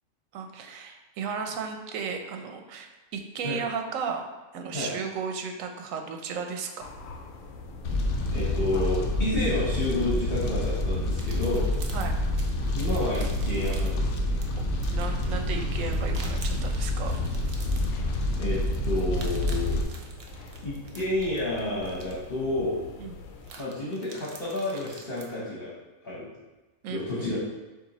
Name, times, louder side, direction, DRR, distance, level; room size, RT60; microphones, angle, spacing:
voice 1, 0.3-4.2 4.5-6.9 11.9-12.1 14.6-17.1 23.0-23.1 26.8-27.3, right 6 dB, 80° right, 4 dB, 1.0 m, -34 dB
sound 1, 6.8-23.5, left 2 dB, 85° left, 1.0 m, -44 dB
Fire, 7.8-19.8, left 1 dB, 70° left, 0.9 m, -28 dB
voice 2, 8.3-11.7 12.7-14.4 18.4-19.8 20.6-22.8 23.6-25.7 26.0-26.3 26.9-27.4, left 2 dB, 45° left, -6 dB, 1.2 m, -30 dB
sound 2, 11.1-25.3, right 3 dB, 55° right, 0.7 m, -48 dB
6.5 x 2.6 x 3.0 m, 1.1 s
omnidirectional pair, 1.4 m